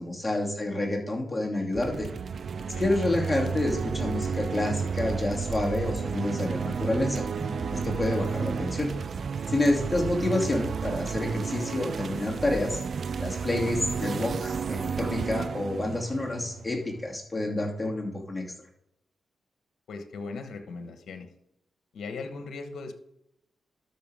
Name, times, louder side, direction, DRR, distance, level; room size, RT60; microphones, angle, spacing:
voice 1, 0.0-2.1 2.8-7.2 7.7-8.9 9.5-12.8 13.2-18.5, left 2 dB, 20° left, -1 dB, 2.7 m, -28 dB
sound 1, 1.7-17.1, right 6 dB, 60° right, 0.4 m, -32 dB
sound 2, 6.7-10.4, equal, ahead, 2.2 m, -46 dB
voice 2, 19.9-21.3 21.9-22.9, left 4 dB, 75° left, 6 dB, 1.2 m, -38 dB
12.5 x 5.9 x 3.6 m, 0.79 s
cardioid pair, 55°, 0 cm